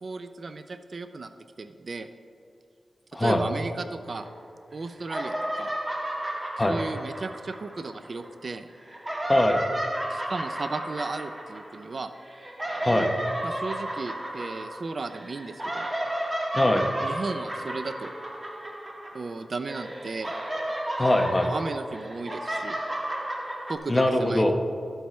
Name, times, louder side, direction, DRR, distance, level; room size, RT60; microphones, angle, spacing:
voice 1, 0.0-1.3 1.6-2.1 3.2-4.3 4.7-5.7 6.7-8.7 10.1-12.1 13.4-15.9 17.0-18.1 19.1-20.4 21.4-22.8 23.7-24.5, right 3 dB, 50° right, 9 dB, 0.4 m, -35 dB
sound 1, 4.1-4.7 5.0-8.3 8.8-19.4 19.7-23.8, right 1 dB, 20° right, 1.2 m, -33 dB
voice 2, 9.3-9.6 12.8-13.1 16.5-16.9 21.0-21.5 23.9-24.5, left 1 dB, 20° left, 4 dB, 0.8 m, -22 dB
13.5 x 8.0 x 3.1 m, 2.5 s
wide cardioid pair, 120°, 0 cm